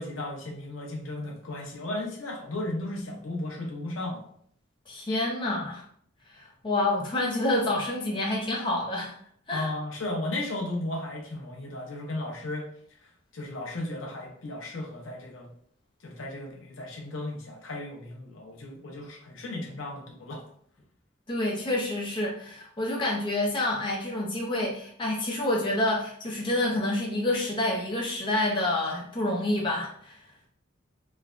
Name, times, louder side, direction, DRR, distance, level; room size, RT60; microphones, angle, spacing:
voice 1, 0.0-4.3 9.5-12.7 13.3-15.5 16.0-20.4, left 2 dB, 75° left, -1 dB, 0.7 m, -35 dB
voice 2, 4.9-5.8 6.3-9.2 9.5-9.7 21.3-30.2, left 1 dB, 25° left, -3 dB, 0.5 m, -28 dB
3.2 x 2.1 x 2.4 m, 0.62 s
head